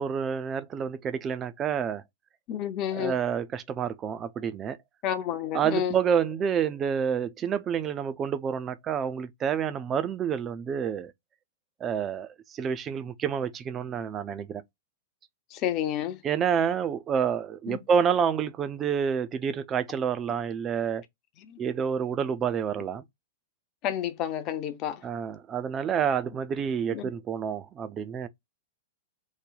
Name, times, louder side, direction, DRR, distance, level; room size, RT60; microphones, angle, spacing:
voice 1, 0.0-2.0 2.9-4.8 5.5-11.1 11.8-14.6 16.2-21.0 21.6-23.0 25.0-28.3, right 7 dB, 25° right, 0.5 m, -28 dB
voice 2, 2.5-3.1 5.0-5.9 15.5-16.2 17.7-17.8 21.5-21.6 23.8-25.0 26.9-27.1, left 10 dB, 35° left, 0.6 m, -30 dB
3.2 x 2.1 x 3.8 m
figure-of-eight pair, 100°, 0 cm